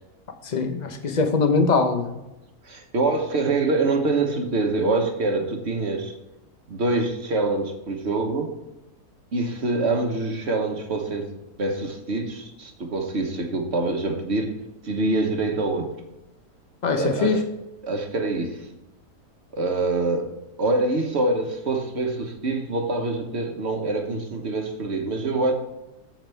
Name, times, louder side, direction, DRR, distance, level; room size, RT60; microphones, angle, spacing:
voice 1, 0.4-2.2 16.8-17.4, left 4 dB, 35° left, 6 dB, 0.9 m, -22 dB
voice 2, 2.6-6.1 6.7-8.6 9.3-11.3 11.6-14.5 14.8-15.9 17.0-17.4 17.8-18.6 19.5-25.5, right 2 dB, 45° right, 4 dB, 1.4 m, -25 dB
9.0 x 7.4 x 3.4 m, 0.97 s
omnidirectional pair, 1.7 m